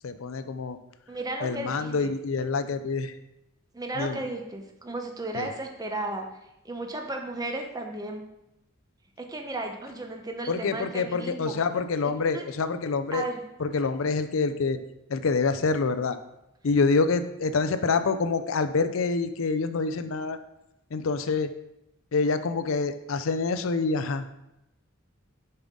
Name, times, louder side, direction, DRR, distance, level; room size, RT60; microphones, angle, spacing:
voice 1, 0.0-0.8 1.4-3.1 4.0-4.2 5.3-5.5 10.5-13.3 13.6-14.8 15.1-16.2 16.6-20.4 20.9-21.5 22.1-24.2, left 4 dB, 75° left, 10 dB, 0.5 m, -26 dB
voice 2, 1.1-2.1 3.7-6.3 6.6-8.2 9.2-11.5 12.2-12.5 13.1-13.4, right 2 dB, 20° right, 3 dB, 0.7 m, -34 dB
7.0 x 5.5 x 3.7 m, 0.87 s
head